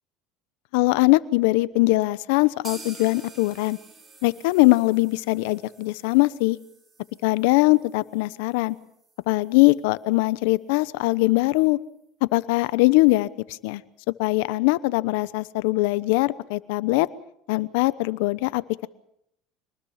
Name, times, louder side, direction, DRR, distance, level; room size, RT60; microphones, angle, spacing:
voice 1, 0.7-3.8 4.2-6.6 7.2-8.8 9.3-11.8 12.2-13.8 14.2-17.1 17.5-18.9, left 21 dB, 75° left, 17 dB, 0.9 m, -21 dB
sound 1, 2.6-10.4 10.7-10.8 11.1-11.2 11.6-11.7, right 3 dB, 25° right, 5.1 m, -48 dB
25.5 x 20.0 x 5.8 m, 0.75 s
supercardioid pair, 90°, 0 cm